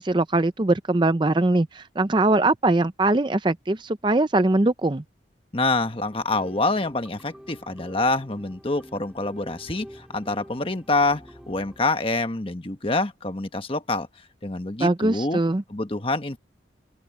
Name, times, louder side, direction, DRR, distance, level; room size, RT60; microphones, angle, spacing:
voice 1, 0.0-5.0 14.8-15.6, right 2 dB, 25° right, 0.5 m, -21 dB
voice 2, 5.5-14.1 14.4-15.4 15.7-16.4, left 2 dB, 30° left, 1.3 m, -26 dB
sound 1, 5.8-11.8, equal, 5° right, 2.1 m, -47 dB
open air
head